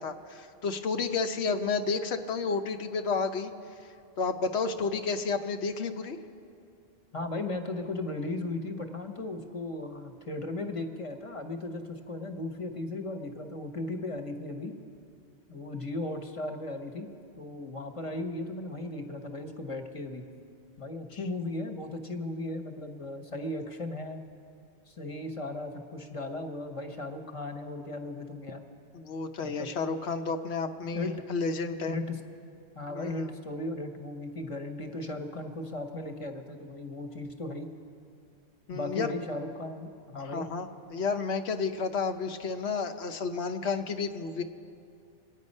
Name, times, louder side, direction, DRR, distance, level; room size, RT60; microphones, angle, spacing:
voice 1, 0.0-3.5 4.2-6.2 28.9-31.9 32.9-33.3 38.7-39.1 40.2-44.4, left 4 dB, 75° left, 6 dB, 1.0 m, -31 dB
voice 2, 7.1-14.7 15.5-17.1 17.4-20.2 20.8-24.2 24.9-28.6 29.4-29.7 30.9-31.1 31.9-32.2 32.7-37.7 38.7-40.5, left 2 dB, 30° left, 5 dB, 1.0 m, -36 dB
24.0 x 9.2 x 5.4 m, 2.5 s
omnidirectional pair, 1.1 m